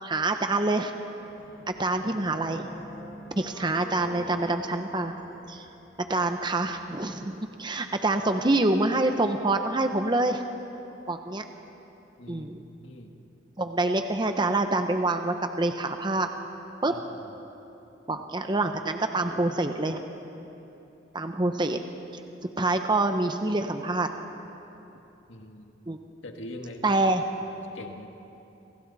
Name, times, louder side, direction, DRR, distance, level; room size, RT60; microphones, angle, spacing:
voice 1, 0.0-0.9 1.7-2.7 3.4-5.1 5.5-5.7 6.0-10.4 11.1-11.4 12.3-12.6 13.6-16.3 16.8-16.9 18.1-20.0 21.1-21.8 22.6-24.1 25.9-26.0 26.8-27.2, right 2 dB, 25° right, 6 dB, 0.9 m, -26 dB
sound 1, 1.2-7.1, left 1 dB, 10° left, 4.8 m, -46 dB
voice 2, 12.8-13.1 16.9-17.3 25.3-25.8 26.2-26.9 27.4-28.1, left 1 dB, 80° left, 3 dB, 1.9 m, -43 dB
29.5 x 26.5 x 4.2 m, 2.9 s
head